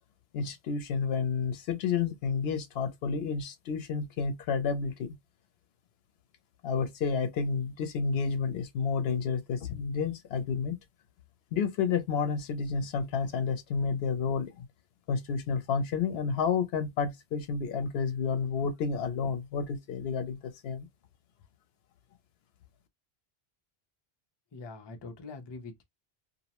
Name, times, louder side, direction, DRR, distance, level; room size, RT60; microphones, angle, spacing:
voice 1, 0.3-5.1 6.6-10.8 11.5-14.5 15.1-20.4 20.6-20.9, left 5 dB, 75° left, 0.8 m, -30 dB
voice 2, 24.5-25.8, left 3 dB, 35° left, 0.4 m, -43 dB
2.6 x 2.0 x 2.8 m
omnidirectional pair, 1.1 m